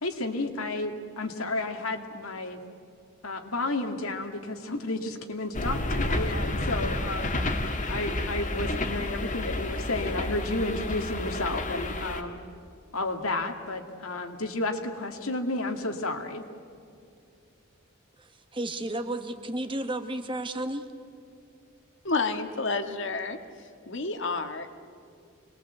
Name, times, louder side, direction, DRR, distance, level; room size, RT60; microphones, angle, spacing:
voice 1, 0.0-2.6 3.2-7.3 7.9-12.4 12.9-16.4, left 2 dB, 85° left, 4 dB, 2.1 m, -32 dB
sound 1, 5.5-12.2, left 1 dB, 35° left, 1.8 m, -30 dB
voice 2, 18.5-20.9, right 1 dB, 25° right, 7 dB, 1.3 m, -32 dB
voice 3, 22.0-23.4 23.9-24.7, left 3 dB, 60° left, 7 dB, 1.7 m, -29 dB
26.0 x 20.5 x 8.2 m, 2.5 s
head